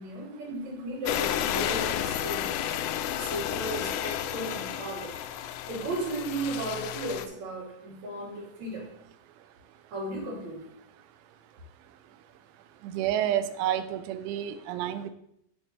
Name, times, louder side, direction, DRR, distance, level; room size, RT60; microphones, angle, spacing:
voice 1, 0.0-2.5 3.2-5.2 5.7-8.9 9.9-10.7, right 1 dB, 45° right, -3 dB, 3.3 m, -35 dB
sound 1, 1.1-7.3, left 11 dB, 85° left, 2.5 m, -32 dB
voice 2, 12.8-15.1, right 11 dB, 85° right, 11 dB, 3.1 m, -29 dB
14.0 x 5.1 x 3.2 m, 0.74 s
omnidirectional pair, 5.3 m